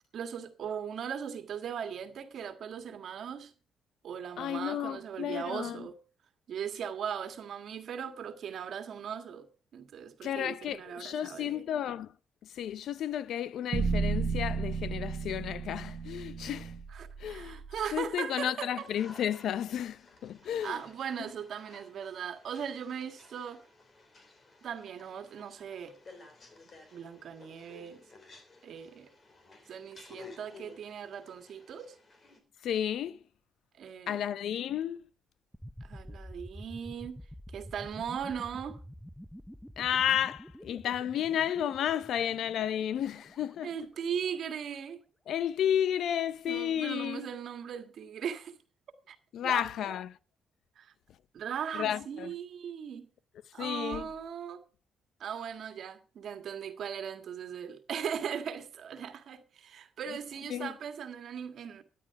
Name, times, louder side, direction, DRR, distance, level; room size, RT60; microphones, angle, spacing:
voice 1, 0.1-3.5 4.0-6.0 6.5-9.5 9.7-11.6 16.9-18.9 20.6-23.6 24.6-25.9 26.9-28.0 28.6-29.1 29.7-32.0 33.8-34.2 35.8-37.2 37.5-38.8 43.6-45.0 46.4-48.5 49.1-49.2 49.4-50.0 50.7-50.9 51.3-53.1 53.5-54.6 55.2-61.8, right 8 dB, 65° right, 1.7 m, -39 dB
voice 2, 4.4-5.9 10.2-12.1 12.5-16.7 17.2-17.6 17.9-20.8 32.6-33.2 34.1-35.0 39.8-43.9 45.3-47.3 49.3-50.2 51.7-52.3 53.6-54.1 60.5-60.7, left 10 dB, 70° left, 0.6 m, -32 dB
sound 1, 13.7-17.9, right 5 dB, 40° right, 1.1 m, -33 dB
sound 2, 18.8-32.4, left 3 dB, 40° left, 3.4 m, -55 dB
sound 3, 35.5-44.4, equal, ahead, 0.7 m, -48 dB
13.0 x 10.0 x 4.7 m
cardioid pair, 90°, 0 cm